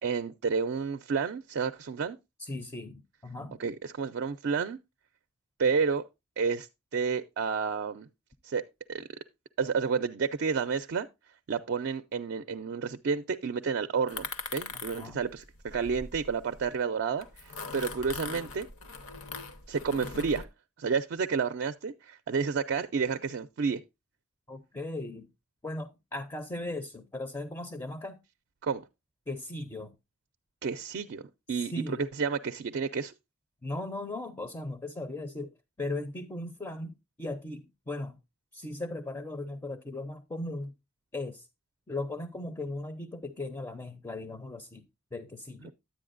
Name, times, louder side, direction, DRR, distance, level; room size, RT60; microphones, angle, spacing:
voice 1, 0.0-2.2 3.6-4.8 5.6-6.0 6.4-8.1 8.4-8.6 8.9-9.0 9.6-11.1 11.5-18.7 19.7-20.5 20.8-23.8 28.6-28.8 30.6-31.2 31.5-33.1 45.6-45.7, right 5 dB, 55° right, 0.4 m, -30 dB
voice 2, 2.4-3.6 14.7-15.2 24.5-25.3 25.6-28.2 29.3-30.0 31.5-32.1 33.6-38.2 38.5-40.7 41.1-41.5 41.9-44.8 45.1-45.7, left 2 dB, 15° left, 0.5 m, -38 dB
sound 1, 14.1-16.7 17.2-20.4, left 4 dB, 70° left, 0.9 m, -41 dB
10.0 x 8.5 x 2.4 m
head